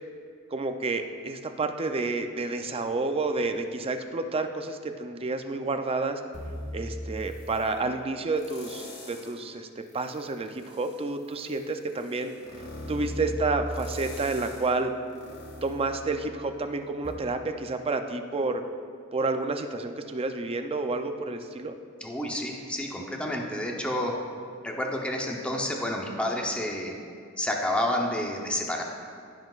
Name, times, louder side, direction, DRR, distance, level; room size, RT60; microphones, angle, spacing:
voice 1, 0.5-6.2 6.7-12.3 12.6-14.9 15.6-18.6 19.1-21.8, right 3 dB, 25° right, 7 dB, 0.5 m, -30 dB
sound 1, 6.3-7.7 8.4-9.4 9.9-16.6 17.0-17.1, equal, 50° left, 1.6 m, -40 dB
voice 2, 22.0-24.1 24.6-27.0 27.4-28.8, left 1 dB, 5° left, 0 dB, 0.8 m, -29 dB
15.5 x 5.8 x 2.4 m, 2.4 s
head